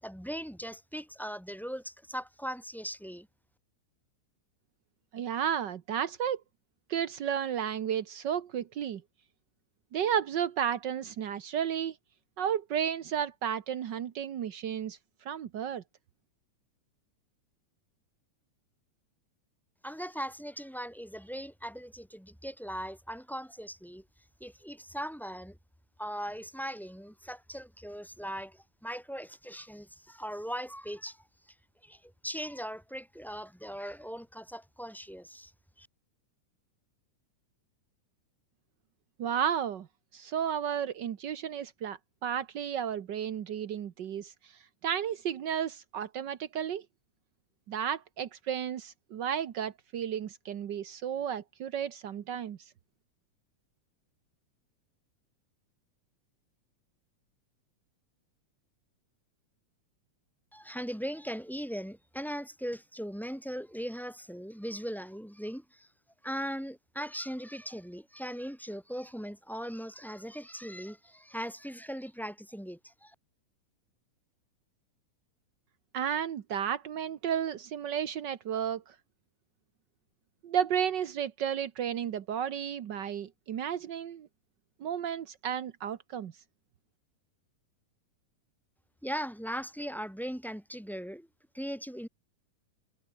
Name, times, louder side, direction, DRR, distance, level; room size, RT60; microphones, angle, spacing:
voice 1, 0.0-3.3 19.8-24.0 24.4-25.6 26.0-31.2 31.8-35.5 35.8-35.9 60.5-65.9 66.2-73.1 89.0-91.3 91.5-92.1, equal, ahead, 6.0 m, -39 dB
voice 2, 5.1-6.4 6.9-9.0 9.9-12.0 12.4-15.0 15.2-15.8 39.2-39.9 40.1-44.5 44.8-46.8 47.7-52.6 75.9-78.9 80.4-84.3 84.8-86.3, right 9 dB, 80° right, 0.9 m, -33 dB
omnidirectional pair, 3.6 m